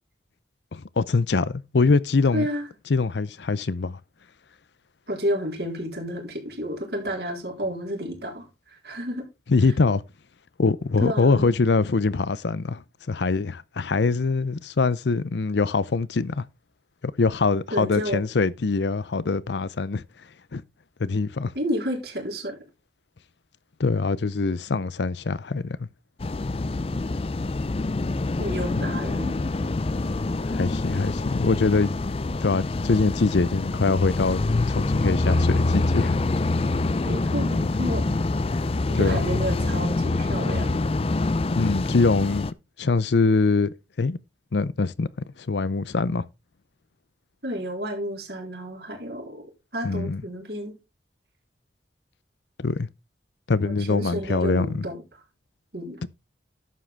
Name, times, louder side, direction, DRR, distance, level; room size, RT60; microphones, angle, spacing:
voice 1, 0.7-2.5 2.9-4.0 9.5-10.0 10.6-12.8 13.1-16.4 17.0-20.0 20.5-20.6 21.0-21.5 23.8-25.8 30.5-31.9 32.4-34.4 34.7-36.2 38.9-39.4 41.6-42.5 42.8-44.2 44.5-45.1 45.5-46.2 49.8-50.2 52.6-52.9 53.5-54.9 56.0-56.1, left 4 dB, 75° left, 0.6 m, -23 dB
voice 2, 2.3-2.7 5.1-8.5 8.8-9.2 11.0-11.5 17.7-18.2 21.6-22.6 26.9-27.0 28.4-29.4 37.0-38.0 38.9-40.8 47.4-49.5 49.7-50.8 53.6-55.0 55.7-56.0, equal, 65° right, 3.9 m, -31 dB
sound 1, 26.2-42.5, left 2 dB, 30° left, 0.4 m, -25 dB
11.0 x 7.6 x 3.4 m
head